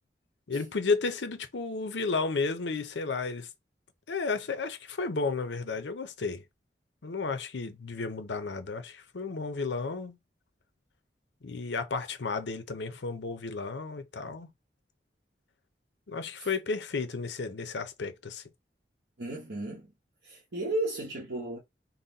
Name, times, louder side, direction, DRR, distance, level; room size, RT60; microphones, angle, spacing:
voice 1, 0.5-3.5 4.1-6.4 7.0-10.2 11.4-14.5 16.1-18.4, left 4 dB, 85° left, 0.7 m, -32 dB
voice 2, 19.2-19.9 20.2-21.6, right 2 dB, 75° right, 1.2 m, -34 dB
4.0 x 2.2 x 4.0 m
head